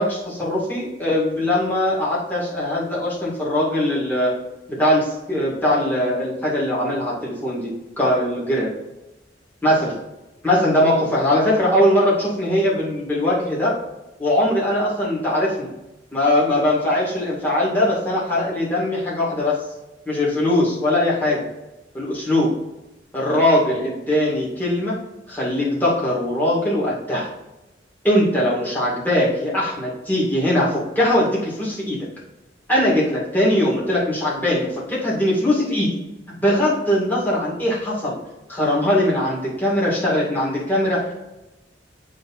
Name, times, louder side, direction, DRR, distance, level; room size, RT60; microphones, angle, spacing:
voice 1, 0.0-4.3 4.8-8.7 9.6-9.9 10.4-13.7 14.2-15.7 16.1-19.6 20.1-21.5 21.9-22.5 23.1-25.0 25.3-27.3 28.0-32.1 32.7-36.0 36.4-38.2 38.5-41.1, left 1 dB, 10° left, -7 dB, 2.3 m, -21 dB
8.7 x 3.4 x 4.2 m, 0.98 s
head